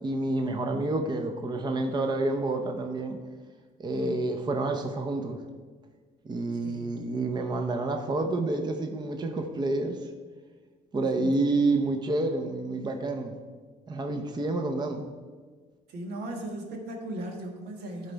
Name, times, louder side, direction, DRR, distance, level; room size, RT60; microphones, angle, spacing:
voice 1, 0.0-3.2 3.8-5.4 6.2-10.1 10.9-13.3 13.9-15.0, right 2 dB, 25° right, 5 dB, 0.6 m, -28 dB
voice 2, 3.9-4.3 6.5-6.9 10.9-11.4 15.9-18.1, right 1 dB, 75° right, 2 dB, 1.5 m, -38 dB
11.5 x 4.0 x 4.5 m, 1.5 s
cardioid pair, 110°, 17 cm